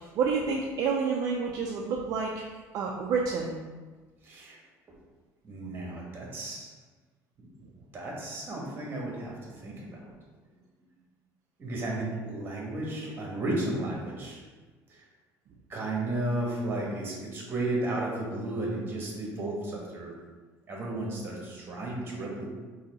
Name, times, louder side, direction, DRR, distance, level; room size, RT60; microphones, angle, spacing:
voice 1, 0.2-2.4 2.7-3.6 7.6-7.7 9.6-9.7, right 5 dB, 55° right, -1 dB, 0.4 m, -29 dB
voice 2, 4.2-4.6 5.4-6.7 7.4-7.5 7.9-9.3 9.6-10.0 11.6-14.4 14.9-15.0 15.7-20.1 20.7-22.5, right 2 dB, 30° right, -2 dB, 1.2 m, -33 dB
4.1 x 2.8 x 4.0 m, 1.3 s
cardioid pair, 130°, 7 cm